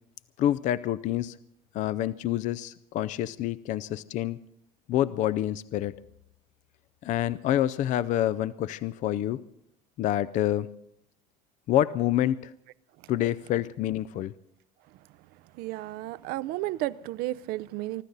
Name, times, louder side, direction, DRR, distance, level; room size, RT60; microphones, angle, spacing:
voice 1, 0.4-1.4 1.7-4.4 4.9-5.9 7.0-9.4 10.0-10.7 11.7-12.5 13.1-14.3, left 12 dB, 45° left, 0.5 m, -27 dB
voice 2, 15.5-18.0, right 16 dB, 65° right, 0.6 m, -33 dB
24.5 x 13.0 x 4.0 m
cardioid pair, 135°, 17 cm